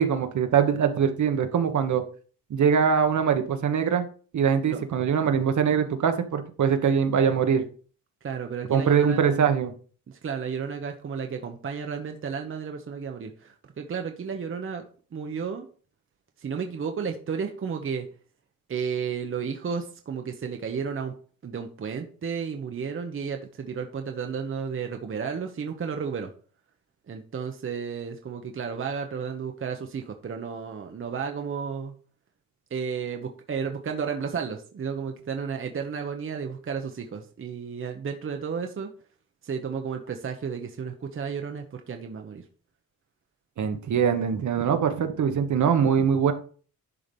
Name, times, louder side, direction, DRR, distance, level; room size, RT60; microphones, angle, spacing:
voice 1, 0.0-2.0 2.5-4.1 4.3-7.6 8.7-9.7 43.6-46.3, right 7 dB, 55° right, 7 dB, 1.3 m, -23 dB
voice 2, 8.2-9.6 10.1-14.8 15.1-15.7 16.4-18.1 18.7-21.1 21.4-26.3 27.1-32.0 32.7-38.9 39.4-42.4, right 6 dB, 35° right, 4 dB, 1.0 m, -32 dB
11.0 x 4.7 x 5.4 m, 0.42 s
wide cardioid pair, 150°, 35 cm